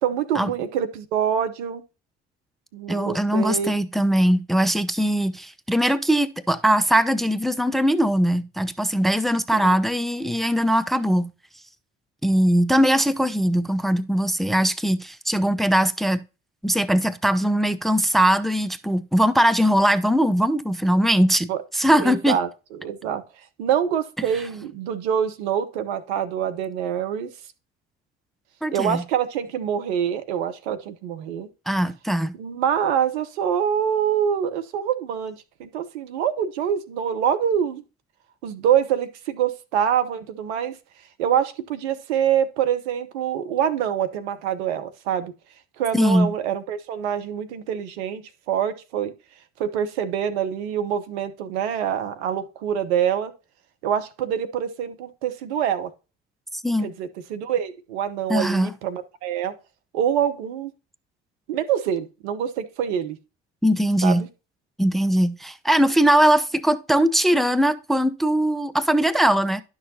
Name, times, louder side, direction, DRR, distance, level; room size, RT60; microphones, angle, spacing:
voice 1, 0.0-1.8 2.7-3.7 9.5-9.7 21.5-21.6 22.0-23.2 23.6-27.3 28.7-31.5 32.3-37.8 38.4-40.7 41.2-45.3 45.8-49.1 49.6-53.3 53.8-55.9 56.8-59.5 59.9-60.7 61.5-63.2 64.0-64.3, right 9 dB, 75° right, 0.9 m, -25 dB
voice 2, 2.9-11.3 12.2-16.2 16.6-22.4 28.6-29.0 31.7-32.3 45.9-46.3 56.5-56.9 58.3-58.7 63.6-64.2 64.8-69.6, equal, ahead, 0.7 m, -20 dB
11.0 x 6.3 x 2.8 m
figure-of-eight pair, 50°, 34 cm